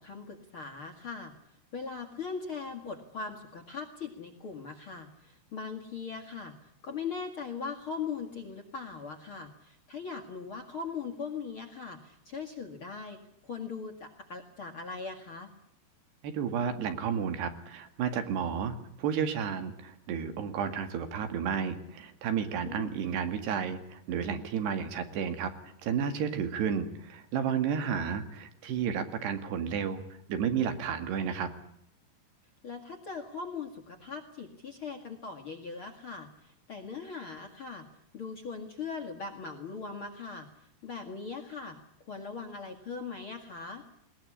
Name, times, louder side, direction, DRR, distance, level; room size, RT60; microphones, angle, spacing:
voice 1, 0.0-1.3 1.7-15.5 22.6-22.9 27.8-28.2 32.6-37.9 38.1-40.5 40.8-41.8 42.0-43.8, left 5 dB, 40° left, 3 dB, 2.1 m, -40 dB
voice 2, 16.2-30.0 30.3-31.5, right 7 dB, 75° right, 9 dB, 4.1 m, -32 dB
20.5 x 20.0 x 10.0 m, 0.73 s
omnidirectional pair, 4.9 m